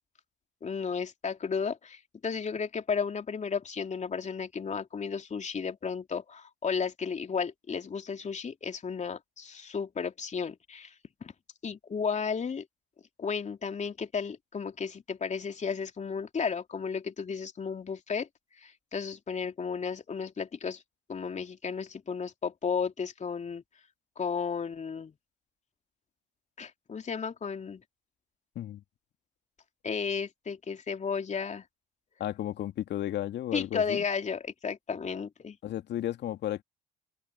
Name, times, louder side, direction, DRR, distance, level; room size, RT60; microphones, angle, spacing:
voice 1, 0.6-10.9 11.2-11.3 11.6-12.6 13.2-18.3 18.6-20.8 21.1-23.6 24.2-25.1 26.6-27.8 29.8-31.6 33.5-35.6, left 6 dB, 35° left, 3.1 m, -33 dB
voice 2, 32.2-34.0 35.6-36.6, left 12 dB, 55° left, 2.7 m, -33 dB
figure-of-eight pair, 55°, 21 cm